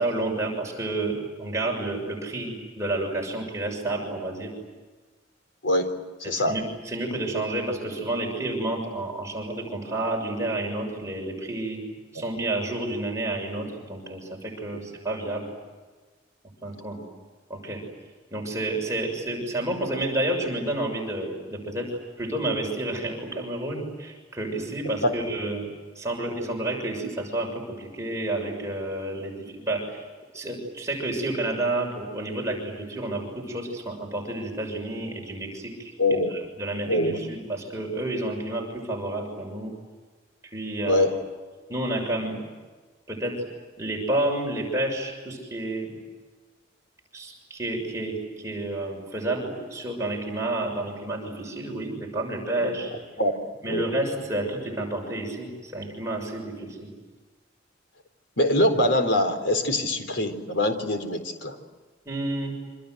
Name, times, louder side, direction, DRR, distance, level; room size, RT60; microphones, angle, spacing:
voice 1, 0.0-4.5 6.2-11.8 12.1-15.5 16.6-17.0 17.5-17.8 18.3-25.7 25.9-30.0 30.3-39.7 40.4-41.0 41.7-42.4 43.1-43.5 43.8-46.0 47.1-52.9 53.6-56.9 62.0-62.6, right 1 dB, 15° right, 0 dB, 6.8 m, -30 dB
voice 2, 5.6-5.9 6.2-6.6 14.7-14.8 25.0-25.1 36.0-36.3 36.9-37.2 40.9-41.1 52.6-52.7 53.2-53.3 53.6-53.9 58.4-61.6, left 1 dB, 75° left, 7 dB, 4.0 m, -23 dB
28.0 x 26.0 x 8.0 m, 1.4 s
head